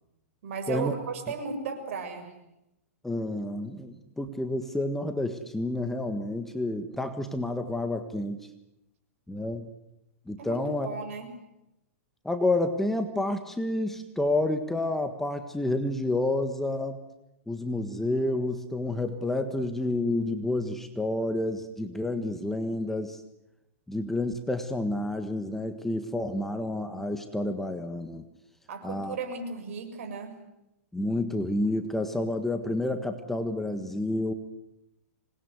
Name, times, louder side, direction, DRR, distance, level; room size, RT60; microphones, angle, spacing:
voice 1, 0.4-2.3 10.4-11.3 28.7-30.4, right 5 dB, 60° right, 6 dB, 7.1 m, -35 dB
voice 2, 3.0-8.5 9.3-9.7 10.3-10.9 12.2-17.0 17.5-23.2 23.9-28.2 28.8-29.2 30.9-34.3, left 2 dB, 5° left, 7 dB, 1.5 m, -29 dB
26.5 x 20.5 x 9.6 m, 0.87 s
hypercardioid pair, 150°, 8 cm